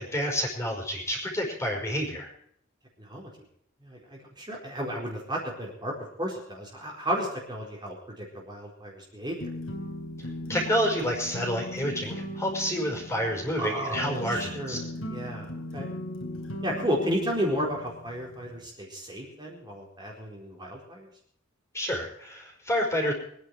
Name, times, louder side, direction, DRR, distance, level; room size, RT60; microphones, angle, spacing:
voice 1, 0.0-2.3 10.2-14.8 21.7-23.1, equal, 15° left, 1 dB, 5.4 m, -29 dB
voice 2, 3.0-3.3 3.8-5.9 6.2-9.5 13.6-14.8 15.1-15.5 15.7-15.9 16.6-21.1, equal, 20° right, -2 dB, 4.3 m, -33 dB
sound 1, 9.4-18.7, equal, 85° left, 3.8 m, -38 dB
24.5 x 10.5 x 4.7 m, 0.69 s
head